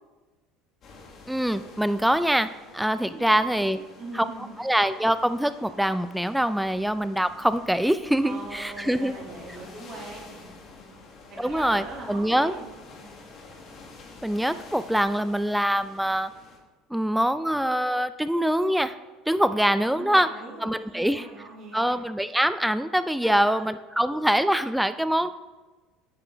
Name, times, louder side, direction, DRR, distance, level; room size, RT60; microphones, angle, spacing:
sound 1, 0.8-16.6, left 3 dB, 45° left, 1.6 m, -48 dB
voice 1, 1.3-2.5 2.7-3.8 4.1-4.3 4.6-9.1 11.4-12.5 14.2-16.3 16.9-18.9 19.3-20.3 20.6-21.3 21.7-25.3, equal, 5° right, 13 dB, 0.4 m, -24 dB
voice 2, 3.0-3.4 3.7-4.5 8.2-11.0 11.3-12.7 13.0-13.2 19.9-22.0 23.2-23.7, right 2 dB, 45° right, -2 dB, 2.2 m, -41 dB
9.6 x 4.9 x 3.4 m, 1.2 s
figure-of-eight pair, 65°, 0 cm